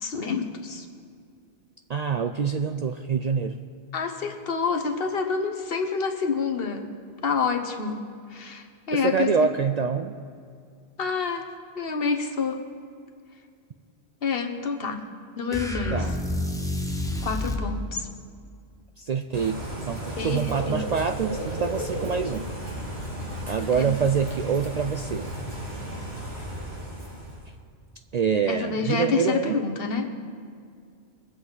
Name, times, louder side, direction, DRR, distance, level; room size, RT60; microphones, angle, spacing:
voice 1, 0.0-0.9 3.9-6.9 7.2-8.0 8.3-9.5 11.0-11.5 11.8-12.6 14.2-15.0 15.4-16.0 17.2-18.1 20.2-20.8 23.8-23.9 28.5-30.1, left 5 dB, 65° left, 5 dB, 1.2 m, -28 dB
voice 2, 1.9-3.6 8.9-10.1 15.9-16.2 19.0-22.5 23.5-25.3 28.1-29.6, right 6 dB, 55° right, 7 dB, 0.4 m, -26 dB
sound 1, 15.5-17.7, left 1 dB, 5° left, 0.7 m, -29 dB
Bird / Rain, 19.3-27.5, right 1 dB, 80° right, 3.0 m, -34 dB
21.5 x 7.8 x 4.0 m, 2.2 s
omnidirectional pair, 1.1 m